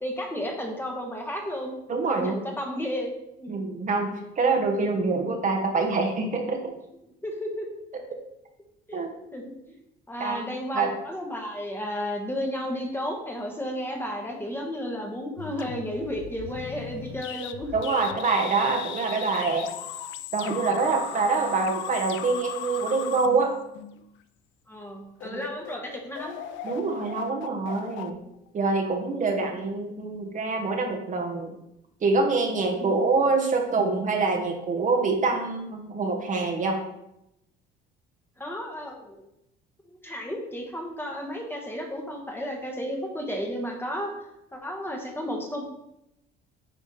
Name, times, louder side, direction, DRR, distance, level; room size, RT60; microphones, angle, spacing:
voice 1, 0.0-3.1 3.4-3.6 7.2-7.7 8.9-9.0 9.3-9.5 10.1-17.7 24.7-26.4 29.4-29.6 32.8-33.1 38.4-39.3 39.9-44.1 44.5-45.6, equal, 10° left, 1 dB, 1.4 m, -33 dB
voice 2, 1.9-2.4 3.5-6.6 8.9-9.1 10.2-10.4 10.7-10.9 17.7-19.7 20.3-23.5 25.2-25.4 26.6-28.2 28.5-31.6 32.0-36.8, right 4 dB, 40° right, 3 dB, 1.3 m, -25 dB
sound 1, 15.4-24.2 24.8-24.9 25.2-29.1, left 9 dB, 70° left, 0.6 m, -38 dB
10.0 x 3.5 x 4.3 m, 0.83 s
cardioid pair, 105°, 20 cm